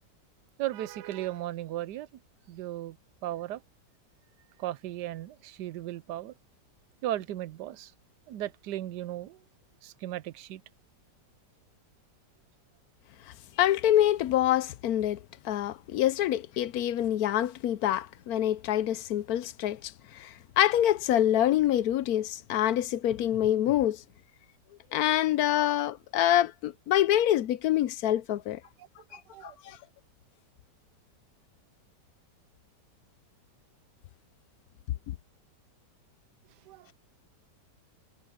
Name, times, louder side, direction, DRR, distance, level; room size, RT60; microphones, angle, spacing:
voice 1, 0.6-2.1 2.5-3.0 3.2-3.6 4.6-6.3 7.0-7.9 8.3-9.4 9.8-10.6 29.1-29.6 36.7-36.9, right 13 dB, 75° right, 1.3 m, -36 dB
voice 2, 13.6-15.2 15.4-24.0 24.9-28.6 29.1-29.8 35.1-35.2, left 12 dB, 70° left, 1.0 m, -26 dB
omnidirectional pair, 1.8 m